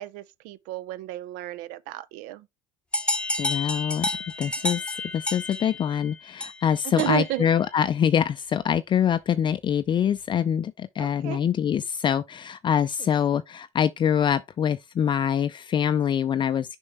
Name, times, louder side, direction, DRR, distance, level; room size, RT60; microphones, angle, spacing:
voice 1, 0.0-2.5 7.0-7.5 11.0-11.4 13.0-13.1, right 14 dB, 75° right, 0.6 m, -32 dB
sound 1, 2.9-7.4, left 2 dB, 5° left, 0.8 m, -30 dB
voice 2, 3.4-4.1 4.4-16.8, left 8 dB, 35° left, 0.4 m, -24 dB
6.4 x 5.4 x 3.4 m
supercardioid pair, 85°, 14 cm